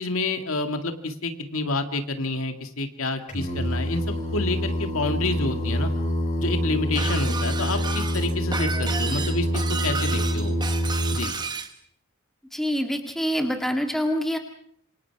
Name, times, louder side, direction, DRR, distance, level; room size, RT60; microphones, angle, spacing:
voice 1, 0.0-5.9 6.4-10.6 11.1-11.4, left 2 dB, 75° left, 6 dB, 2.2 m, -29 dB
Singing, 3.3-11.2, equal, 35° left, 5.4 m, -26 dB
Shatter, 7.0-11.7, right 4 dB, 20° right, 1.4 m, -32 dB
voice 2, 12.5-14.4, equal, ahead, 4 dB, 2.1 m, -25 dB
27.5 x 25.0 x 4.8 m, 0.62 s
head